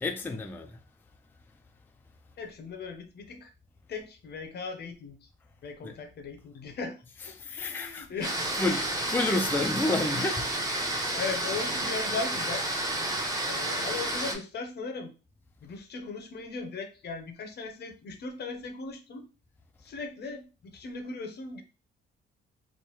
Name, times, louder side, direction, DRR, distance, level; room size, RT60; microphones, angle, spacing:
voice 1, 0.0-0.7 7.4-8.1 8.6-10.5, left 2 dB, 10° left, 0.3 m, -29 dB
voice 2, 2.4-3.5 3.9-5.3 5.6-8.5 8.8-9.1 11.1-12.7 13.5-15.1 15.6-19.2 19.8-21.6, left 4 dB, 55° left, 0.7 m, -38 dB
sound 1, 8.2-14.3, right 1 dB, 20° right, 0.8 m, -30 dB
3.2 x 2.1 x 3.0 m
cardioid pair, 90°, 20 cm